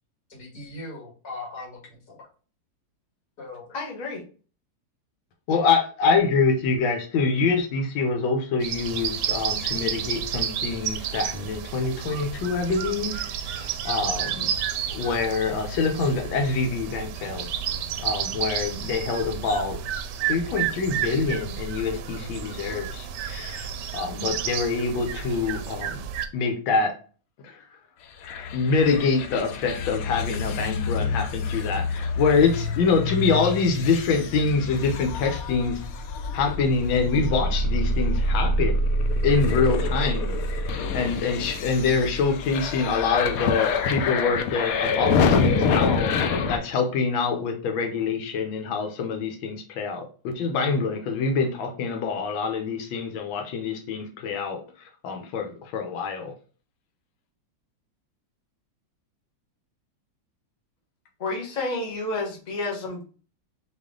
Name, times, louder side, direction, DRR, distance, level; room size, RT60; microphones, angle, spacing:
voice 1, 0.3-2.3 3.4-3.7, left 2 dB, 55° left, -3 dB, 2.5 m, -39 dB
voice 2, 3.7-4.2 61.2-63.1, left 2 dB, 30° left, -1 dB, 1.0 m, -30 dB
voice 3, 5.5-14.5 14.9-17.5 18.0-19.8 20.3-26.0 26.3-27.0 27.4-27.8 28.5-35.8 36.3-38.8 39.2-56.3, left 4 dB, 90° left, 4 dB, 1.6 m, -25 dB
sound 1, 8.6-26.3, right 9 dB, 70° right, 1.1 m, -31 dB
sound 2, 28.2-46.6, left 3 dB, 75° left, 0.8 m, -26 dB
4.2 x 3.1 x 3.6 m, 0.39 s
omnidirectional pair, 2.1 m